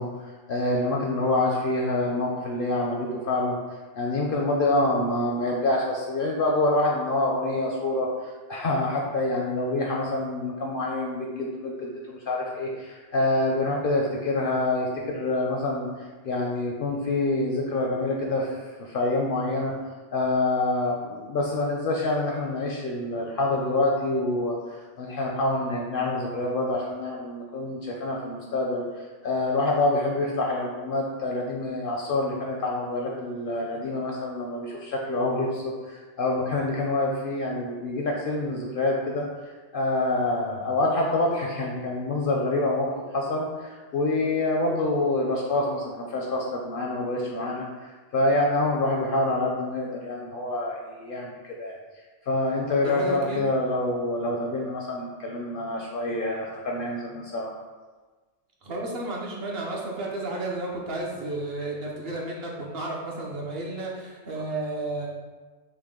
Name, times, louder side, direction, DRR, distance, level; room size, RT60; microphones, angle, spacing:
voice 1, 0.0-3.6 4.0-15.9 16.2-19.7 20.1-51.7 52.2-57.5, left 2 dB, 60° left, -1 dB, 0.6 m, -26 dB
voice 2, 52.8-53.4 58.6-65.1, right 2 dB, 60° right, -2 dB, 0.9 m, -32 dB
5.8 x 2.2 x 3.6 m, 1.3 s
omnidirectional pair, 1.3 m